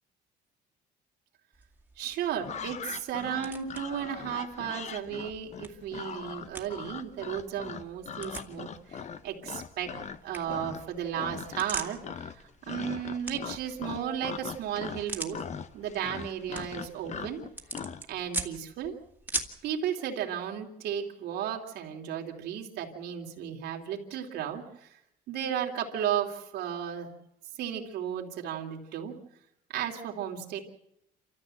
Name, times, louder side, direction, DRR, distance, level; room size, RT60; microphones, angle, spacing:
sound 1, 1.5-19.7, right 2 dB, 10° right, 2.2 m, -43 dB
voice 1, 2.0-10.0 10.2-15.4 15.7-17.4 18.1-18.9 19.6-25.0 25.3-27.1 27.6-29.2 29.7-30.6, right 9 dB, 80° right, 1 dB, 2.9 m, -34 dB
sound 2, 2.4-10.2 10.5-10.9 11.2-11.8 12.0-18.0, left 7 dB, 45° left, 1.1 m, -40 dB
27.5 x 14.0 x 7.8 m, 0.82 s
cardioid pair, 110°, 17 cm